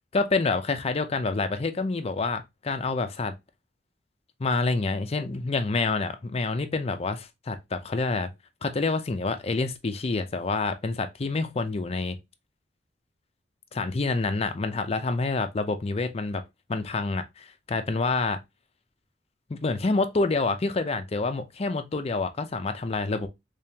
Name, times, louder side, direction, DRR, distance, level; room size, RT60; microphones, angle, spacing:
voice 1, 0.1-3.4 4.4-8.3 8.6-12.2 13.7-16.4 16.7-18.4 19.5-23.3, left 3 dB, 35° left, 0.5 m, -27 dB
3.6 x 3.4 x 2.8 m
head